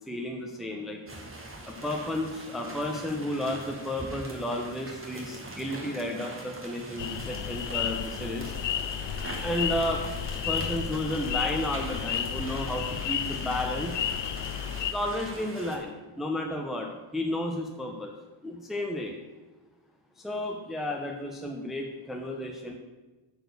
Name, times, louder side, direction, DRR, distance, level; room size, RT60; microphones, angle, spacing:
voice 1, 0.1-1.0 1.6-8.5 9.4-10.0 10.5-13.9 14.9-18.1 18.4-19.1 20.2-22.8, left 1 dB, ahead, 1 dB, 0.8 m, -32 dB
sound 1, 1.1-15.8, right 2 dB, 25° right, 1.7 m, -42 dB
sound 2, 7.0-14.9, left 9 dB, 60° left, 0.6 m, -32 dB
8.9 x 4.7 x 6.6 m, 1.2 s
wide cardioid pair, 115°, 49 cm